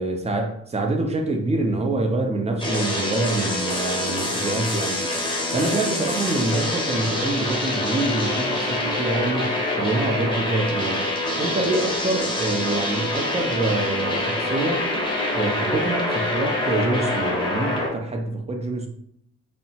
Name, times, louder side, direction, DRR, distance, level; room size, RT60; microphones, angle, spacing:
voice 1, 0.0-5.0 5.5-11.1 11.4-14.9 15.3-18.9, right 2 dB, 20° right, 3 dB, 0.5 m, -26 dB
sound 1, 2.6-17.9, left 1 dB, 15° left, 0.7 m, -25 dB
2.7 x 2.1 x 2.7 m, 0.70 s
cardioid pair, 90°, 30 cm